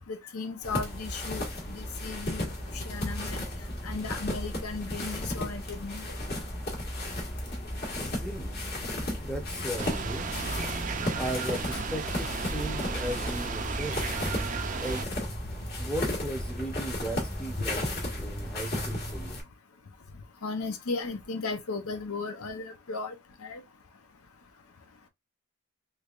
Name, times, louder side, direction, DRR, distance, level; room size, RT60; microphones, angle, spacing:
voice 1, 0.1-3.5 3.8-6.1 11.7-11.8 20.4-23.1 23.4-23.6, left 4 dB, 85° left, 0.7 m, -36 dB
sound 1, 0.6-19.4, left 1 dB, 45° left, 1.3 m, -34 dB
voice 2, 8.2-8.6 9.2-10.3 11.1-14.0 14.8-15.0 15.8-17.8 18.2-19.4, right 1 dB, 5° left, 0.7 m, -36 dB
sound 2, 9.8-15.1, right 4 dB, 35° right, 0.4 m, -34 dB
3.3 x 3.2 x 2.4 m
head